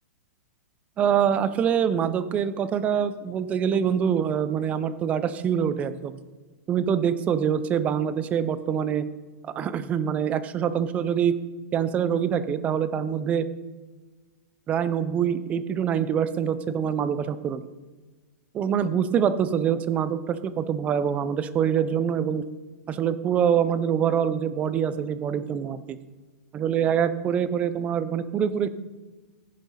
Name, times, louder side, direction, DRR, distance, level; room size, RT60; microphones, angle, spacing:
voice 1, 1.0-6.2 6.7-9.1 9.4-11.4 11.7-13.5 14.7-17.7 18.5-22.4 22.9-26.0 26.5-28.7, right 8 dB, 15° right, 14 dB, 0.5 m, -25 dB
15.0 x 10.5 x 4.1 m, 1.3 s
hypercardioid pair, 160°, 8 cm